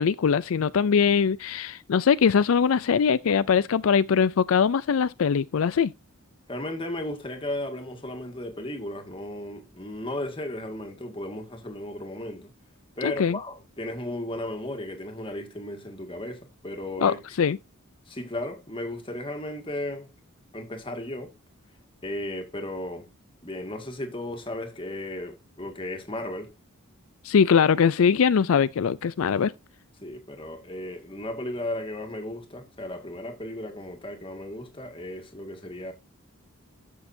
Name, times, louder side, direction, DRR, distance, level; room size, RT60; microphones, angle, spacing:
voice 1, 0.0-5.9 13.0-13.4 17.0-17.6 27.2-29.5, left 6 dB, 80° left, 0.4 m, -22 dB
voice 2, 6.5-12.5 13.0-17.2 18.1-20.1 20.5-21.3 22.0-23.1 23.4-26.5 30.0-35.9, left 1 dB, 25° left, 2.0 m, -35 dB
13.5 x 6.4 x 2.7 m
head